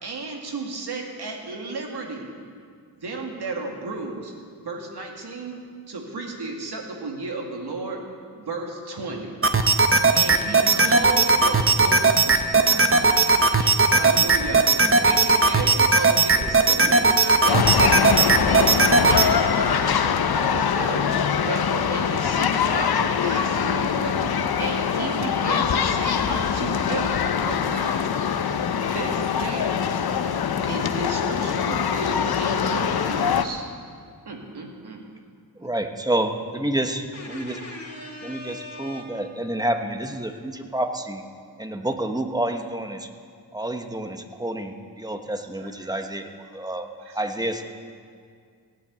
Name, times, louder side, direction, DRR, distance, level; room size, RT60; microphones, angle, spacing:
voice 1, 0.0-2.3 3.0-5.6 5.9-9.4 10.1-13.3 13.5-18.7 19.1-28.1 28.9-29.8 30.4-33.7 34.3-35.1 45.6-45.7 46.4-46.6 47.0-47.2, right 3 dB, 80° right, 1 dB, 2.3 m, -34 dB
sound 1, 9.4-19.3, right 3 dB, 35° right, 0.9 m, -18 dB
voice 2, 14.8-15.2 35.6-37.6 38.2-41.2 41.6-43.1 43.5-46.9 47.1-47.6, right 1 dB, 10° right, 6 dB, 1.2 m, -29 dB
sound 2, 17.5-33.4, left 7 dB, 70° left, 0.8 m, -23 dB
voice 3, 37.1-39.1, left 2 dB, 35° left, -7 dB, 2.9 m, -39 dB
17.0 x 9.1 x 8.2 m, 2.1 s
wide cardioid pair, 80°, 39 cm